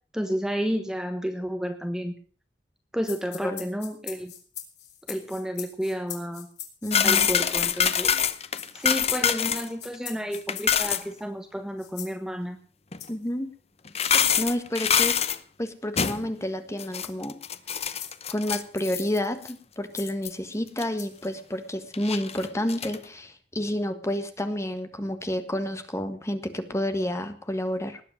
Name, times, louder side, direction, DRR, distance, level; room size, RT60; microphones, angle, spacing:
voice 1, 0.1-2.1 2.9-4.3 5.1-6.5 7.0-8.1 8.7-12.6, equal, 5° right, 7 dB, 1.2 m, -31 dB
sound 1, 3.0-11.2 11.8-12.2 13.0-13.3 14.0-14.1 15.0-15.2 16.0-16.2 17.0-17.1 18.0-18.2 19.0-19.2 19.9-20.1 21.0-21.2, left 10 dB, 70° left, 3.5 m, -41 dB
voice 2, 6.8-7.3 13.1-13.5 14.4-15.2 15.6-17.4 18.3-28.0, left 1 dB, 15° left, 8 dB, 1.6 m, -30 dB
sound 2, 6.9-9.7 9.9-10.0 10.3-11.0 12.9-13.0 13.9-15.4 16.0-16.3 16.8-19.2 19.5-19.6 20.1-20.3 20.8-20.9 21.9-23.0, left 8 dB, 35° left, 0.9 m, -25 dB
19.5 x 8.4 x 6.6 m, 0.41 s
head